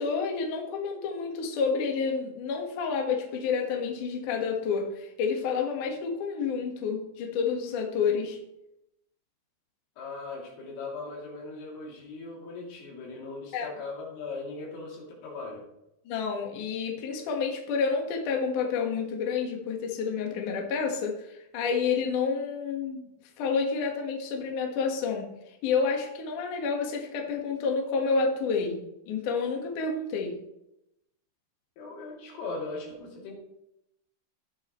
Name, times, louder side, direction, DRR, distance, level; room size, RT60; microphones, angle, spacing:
voice 1, 0.0-8.4 13.5-13.7 16.1-23.0 23.4-25.2 25.6-28.8 29.1-30.4, left 5 dB, 55° left, 1 dB, 2.4 m, -29 dB
voice 2, 10.0-15.7 31.8-33.3, left 3 dB, 90° left, -3 dB, 5.6 m, -39 dB
17.0 x 7.5 x 3.2 m, 0.84 s
omnidirectional pair, 5.6 m